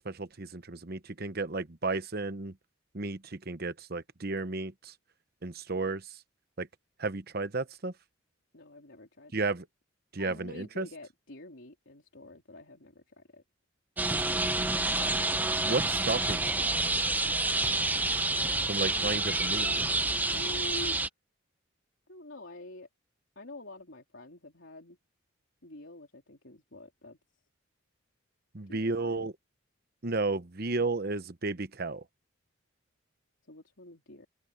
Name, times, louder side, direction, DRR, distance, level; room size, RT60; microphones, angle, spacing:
voice 1, 0.0-2.5 2.9-4.9 5.4-6.0 6.6-6.7 7.0-7.9 9.3-9.7 10.1-10.9 14.6-14.7 15.6-16.5 18.7-19.7 28.5-29.3 30.0-32.0, right 3 dB, 50° right, 1.0 m, -33 dB
voice 2, 8.5-9.5 10.2-13.4 20.3-21.1 22.1-22.9 23.4-25.0 25.6-27.2 28.7-29.2 33.5-34.3, left 1 dB, 65° left, 3.8 m, -47 dB
sound 1, 14.0-21.1, right 2 dB, 10° right, 0.7 m, -28 dB
open air
head